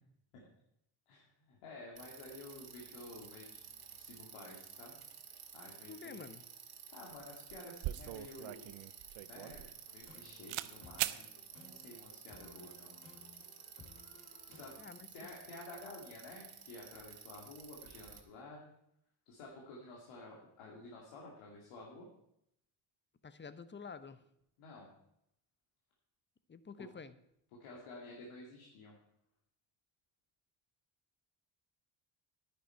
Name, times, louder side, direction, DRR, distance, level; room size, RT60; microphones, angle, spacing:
voice 1, 1.1-5.0 5.5-6.2 6.9-8.7 9.2-12.9 14.5-14.7 15.1-18.7 19.3-22.1 24.6-24.9 27.6-29.0, left 2 dB, 85° left, -3 dB, 2.4 m, -52 dB
Bicycle, 2.0-18.2, right 7 dB, 45° right, 2.0 m, -53 dB
voice 2, 5.9-6.4 14.8-15.3 23.2-24.2 26.5-27.2, left 5 dB, 25° left, 14 dB, 0.8 m, -49 dB
sound 1, 7.1-7.2 7.5-10.2 10.5-10.7 11.0-11.2, right 16 dB, 70° right, 0.7 m, -40 dB
sound 2, 9.8-14.8, left 4 dB, 40° left, 3.0 m, -60 dB
10.5 x 9.9 x 4.5 m, 0.77 s
supercardioid pair, 75°, 50 cm